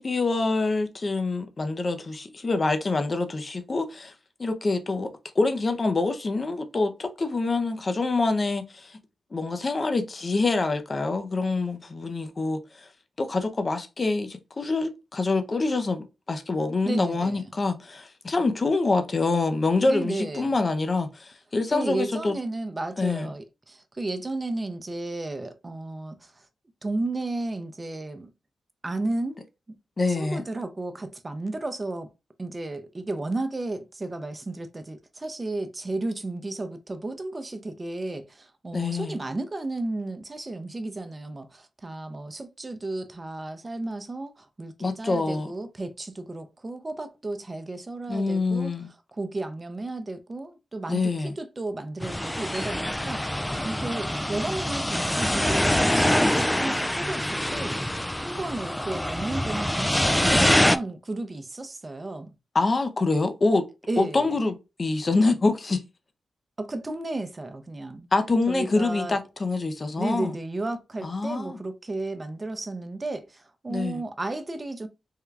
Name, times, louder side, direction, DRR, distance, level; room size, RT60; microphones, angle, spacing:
voice 1, 0.0-4.1 4.4-5.1 5.3-9.0 9.3-12.9 13.2-22.3 23.0-23.3 30.0-30.4 38.7-39.2 44.8-45.5 48.1-48.9 50.9-51.3 62.5-63.6 64.0-65.8 68.1-70.3 71.0-71.6 73.7-74.0, left 3 dB, 45° left, 0.6 m, -26 dB
voice 2, 16.8-17.5 19.8-20.6 21.7-26.5 26.8-28.3 28.8-29.4 29.7-29.8 30.1-32.1 32.4-48.7 49.1-53.4 53.6-57.7 58.2-62.3 63.9-64.3 66.6-68.1 68.5-69.2 70.0-74.9, right 2 dB, 35° right, 0.7 m, -33 dB
sound 1, 52.0-60.8, left 1 dB, 10° left, 0.3 m, -25 dB
3.6 x 2.2 x 3.3 m
cardioid pair, 50°, 0 cm